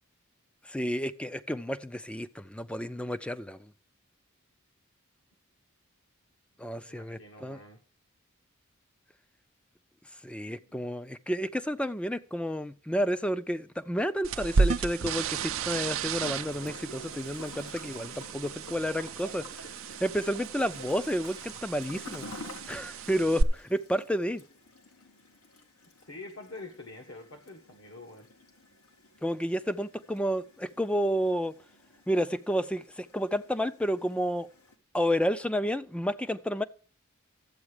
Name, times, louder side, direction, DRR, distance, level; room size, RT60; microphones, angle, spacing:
voice 1, 0.6-3.7 6.6-7.6 10.1-19.7 20.0-24.4 29.2-31.5 32.1-34.5 34.9-36.6, equal, 5° left, 0.4 m, -31 dB
voice 2, 6.8-7.8 10.6-10.8 25.8-28.3, left 2 dB, 65° left, 1.4 m, -46 dB
sound 1, 14.2-23.4, right 4 dB, 65° right, 0.5 m, -33 dB
Gurgling / Toilet flush, 16.2-34.7, left 2 dB, 90° left, 1.8 m, -50 dB
12.0 x 8.0 x 4.9 m
head